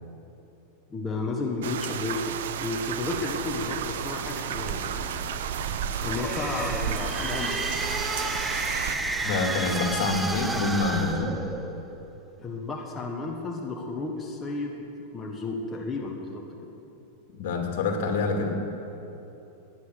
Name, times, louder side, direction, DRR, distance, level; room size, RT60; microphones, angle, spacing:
voice 1, 0.9-4.9 6.0-7.6 12.4-14.8 15.1-16.4, left 3 dB, 15° left, -1 dB, 1.4 m, -32 dB
sound 1, 1.6-9.0, right 9 dB, 80° right, 0.8 m, -33 dB
sound 2, 3.0-11.1, right 6 dB, 50° right, 1.4 m, -37 dB
sound 3, 6.0-11.9, right 2 dB, 10° right, 0.8 m, -32 dB
voice 2, 9.2-11.3 17.3-18.6, left 3 dB, 70° left, 2 dB, 2.6 m, -26 dB
19.0 x 9.5 x 6.6 m, 3.0 s
supercardioid pair, 145°, 0 cm